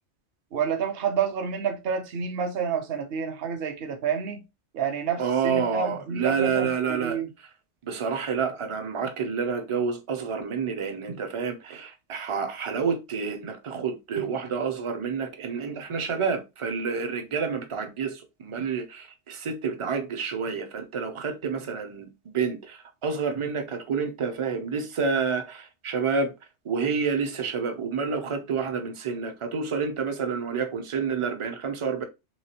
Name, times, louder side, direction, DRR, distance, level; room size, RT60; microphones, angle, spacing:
voice 1, 0.5-4.4 4.7-7.3, right 6 dB, 60° right, 0.9 m, -29 dB
voice 2, 5.2-7.2 7.8-22.1 22.3-26.3 26.6-32.0, right 5 dB, 40° right, 0.5 m, -29 dB
3.3 x 3.1 x 2.8 m
omnidirectional pair, 1.2 m